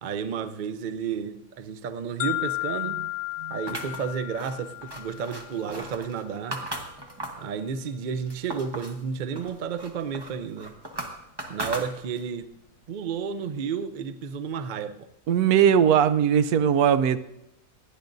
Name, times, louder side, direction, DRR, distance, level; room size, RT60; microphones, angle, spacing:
voice 1, 0.0-6.6 7.4-10.7 11.5-12.5 12.9-15.1, right 6 dB, 90° right, 11 dB, 0.4 m, -32 dB
sound 1, 2.2-6.2, left 20 dB, 80° left, 1.3 m, -34 dB
sound 2, 3.7-7.5 7.9-9.0 9.4-12.4, right 1 dB, 15° right, 1.0 m, -37 dB
voice 2, 15.3-17.2, right 8 dB, 75° right, 13 dB, 1.1 m, -19 dB
27.5 x 10.5 x 2.6 m, 0.84 s
omnidirectional pair, 1.7 m